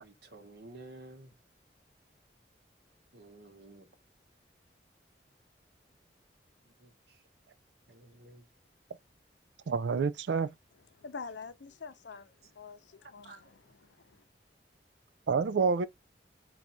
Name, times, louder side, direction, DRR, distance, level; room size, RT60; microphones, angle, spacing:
voice 1, 0.0-1.3 3.1-3.9 6.8-6.9 7.9-8.4 13.2-13.4, right 2 dB, 60° right, 1.0 m, -51 dB
voice 2, 9.7-10.5 15.3-15.9, right 5 dB, 75° right, 0.4 m, -28 dB
voice 3, 11.0-14.2, left 4 dB, 85° left, 0.6 m, -46 dB
4.5 x 2.4 x 4.0 m
head